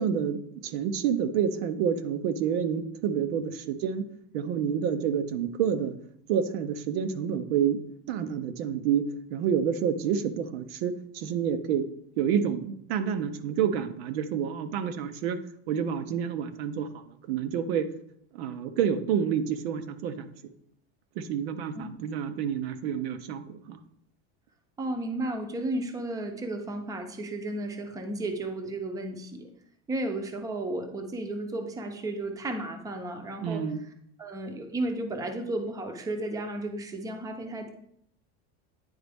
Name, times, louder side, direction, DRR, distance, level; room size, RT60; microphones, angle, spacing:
voice 1, 0.0-4.0 4.3-5.9 6.3-7.8 8.1-11.8 12.2-15.4 15.7-17.9 18.3-20.3 21.2-23.8 33.4-33.8, right 8 dB, 85° right, 9 dB, 0.8 m, -28 dB
voice 2, 24.8-29.5 29.9-33.6 34.2-37.7, right 2 dB, 10° right, 5 dB, 0.6 m, -33 dB
9.7 x 4.0 x 3.4 m, 0.68 s
cardioid pair, 160°, 30 cm